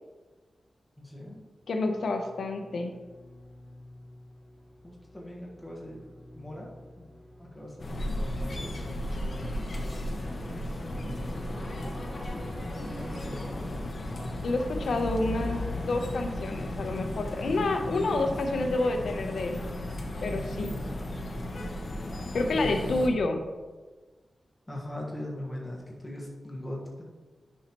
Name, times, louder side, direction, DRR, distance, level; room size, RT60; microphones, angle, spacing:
voice 1, 1.0-1.4 4.8-6.7 7.0-7.1 7.4-10.0 10.9-12.4 13.0-13.7 20.3-21.0 22.6-23.1 24.7-27.0, left 1 dB, 10° left, -3 dB, 1.4 m, -41 dB
sound 1, 1.6-14.3, equal, 10° right, 2.3 m, -48 dB
voice 2, 1.7-2.9 14.4-19.6 20.2-20.7 22.3-23.4, left 2 dB, 85° left, 5 dB, 0.8 m, -29 dB
sound 2, 7.8-23.1, left 1 dB, 40° left, 0.9 m, -35 dB
9.6 x 5.6 x 3.0 m, 1.3 s
wide cardioid pair, 160°, 0 cm